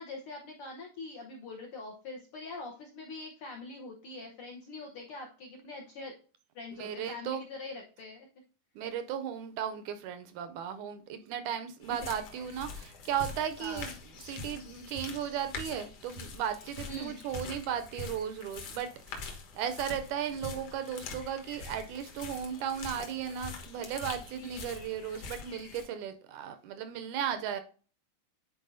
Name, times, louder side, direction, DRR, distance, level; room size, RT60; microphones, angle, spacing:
voice 1, 0.0-6.1 6.5-8.3 12.0-12.1 13.6-13.9 16.9-17.2 24.4-24.7, left 2 dB, 80° left, 1.2 m, -43 dB
voice 2, 6.8-7.4 8.8-13.9 14.2-27.6, right 9 dB, 80° right, 1.8 m, -36 dB
sound 1, 11.8-25.8, left 4 dB, 55° left, 1.9 m, -44 dB
sound 2, 12.3-13.4 14.3-14.6 14.8-15.0 15.4-15.5 16.0-16.9 17.3-17.5 18.6-19.2 19.8-19.9 20.8-20.9 21.3-21.5 21.7-22.2 22.9-23.3 24.2-24.3 24.5-24.7 24.9-25.0, right 1 dB, 65° right, 0.3 m, -59 dB
10.0 x 4.6 x 2.6 m
omnidirectional pair, 3.9 m